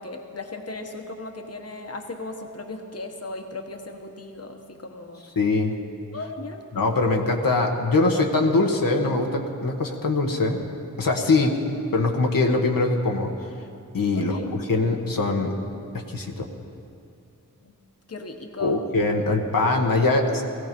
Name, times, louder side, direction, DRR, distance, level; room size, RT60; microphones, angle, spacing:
voice 1, 0.0-5.3 6.1-6.6 11.3-11.5 14.1-14.5 17.6-17.8 18.1-18.8 20.1-20.2, left 3 dB, 45° left, 4 dB, 1.3 m, -37 dB
voice 2, 5.4-5.7 6.7-10.6 11.0-11.5 11.9-13.3 13.9-15.5 16.1-16.5 18.6-20.4, left 3 dB, 80° left, 1 dB, 1.4 m, -22 dB
18.0 x 15.0 x 5.3 m, 2.5 s
wide cardioid pair, 55°, 33 cm